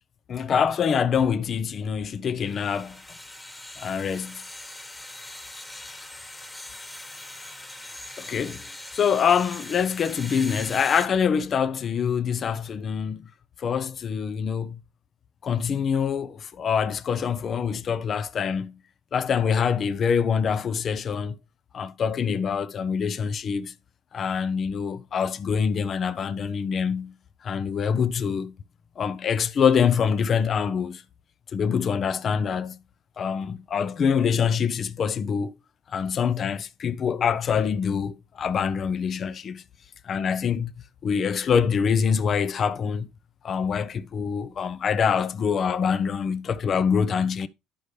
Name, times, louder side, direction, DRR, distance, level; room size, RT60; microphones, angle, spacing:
voice 1, 0.3-3.0 3.8-4.4 8.2-8.6 8.9-13.3 13.6-14.8 15.4-18.8 19.1-21.4 21.7-23.7 24.1-27.1 27.4-28.5 29.0-31.0 31.5-32.8 33.2-35.5 35.9-39.6 40.0-40.7 41.0-43.1 43.4-47.5, left 7 dB, 45° left, 0.6 m, -25 dB
sound 1, 2.4-11.1, left 1 dB, 10° left, 1.5 m, -41 dB
11.5 x 5.2 x 3.2 m
supercardioid pair, 85°, 0 cm